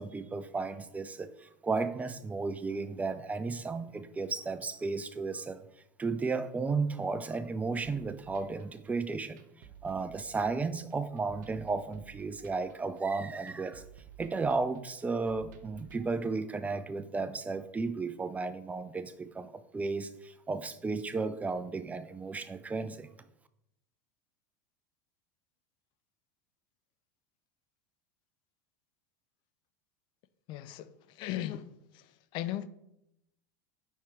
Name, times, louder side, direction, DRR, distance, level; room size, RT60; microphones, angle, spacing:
voice 1, 0.0-5.6 6.0-13.8 14.2-23.1, right 4 dB, 15° right, 0.5 m, -34 dB
sound 1, 7.8-16.0, right 10 dB, 75° right, 0.8 m, -54 dB
voice 2, 30.5-31.7 31.9-32.7, left 13 dB, 55° left, 0.5 m, -37 dB
5.8 x 4.4 x 4.7 m
hypercardioid pair, 90°, 10 cm